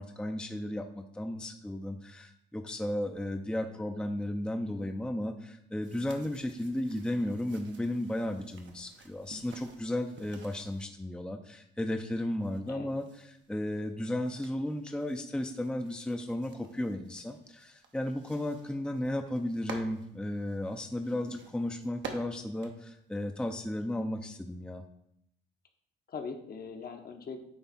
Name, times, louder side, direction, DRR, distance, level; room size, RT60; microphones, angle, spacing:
voice 1, 0.0-13.0 13.5-24.8, left 1 dB, 5° left, 5 dB, 0.6 m, -34 dB
sound 1, 5.8-10.8 11.8-23.7, right 5 dB, 70° right, 1.0 m, -51 dB
voice 2, 26.1-27.4, left 5 dB, 50° left, 5 dB, 1.0 m, -41 dB
9.4 x 3.5 x 4.2 m, 0.74 s
cardioid pair, 90°, 20 cm